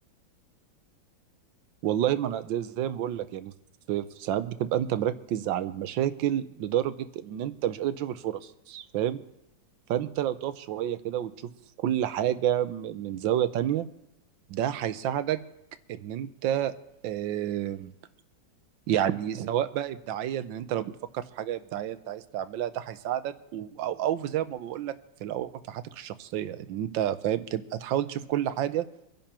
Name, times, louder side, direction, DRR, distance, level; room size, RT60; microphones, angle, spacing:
voice 1, 1.8-3.5 3.9-9.2 9.9-11.3 11.8-13.9 14.5-15.4 15.9-16.7 17.0-17.9 18.9-20.9 21.1-24.9 25.2-28.8, right 11 dB, 75° right, 12 dB, 1.4 m, -29 dB
25.5 x 10.5 x 2.9 m, 0.89 s
omnidirectional pair, 2.2 m